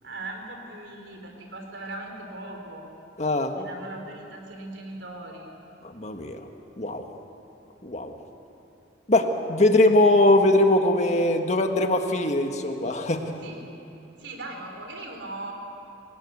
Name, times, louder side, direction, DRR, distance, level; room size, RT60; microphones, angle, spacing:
voice 1, 0.0-2.9 3.5-5.5 13.4-13.7 14.2-15.5, right 2 dB, 80° right, 3 dB, 3.9 m, -39 dB
voice 2, 3.2-3.5 5.8-6.4 6.8-7.0 7.8-8.1 9.1-13.2, left 1 dB, 40° left, 5 dB, 1.6 m, -21 dB
27.5 x 17.5 x 8.1 m, 3.0 s
head